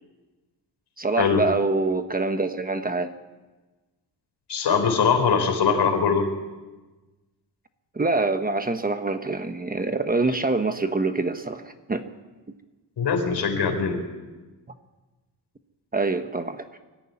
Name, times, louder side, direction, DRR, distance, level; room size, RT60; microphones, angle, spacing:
voice 1, 1.0-3.1 7.9-12.0 15.9-16.7, right 3 dB, 20° right, 8 dB, 1.0 m, -25 dB
voice 2, 4.5-6.3 13.0-14.0, left 6 dB, 70° left, 4 dB, 4.4 m, -22 dB
24.5 x 14.0 x 9.7 m, 1.2 s
wide cardioid pair, 160°, 41 cm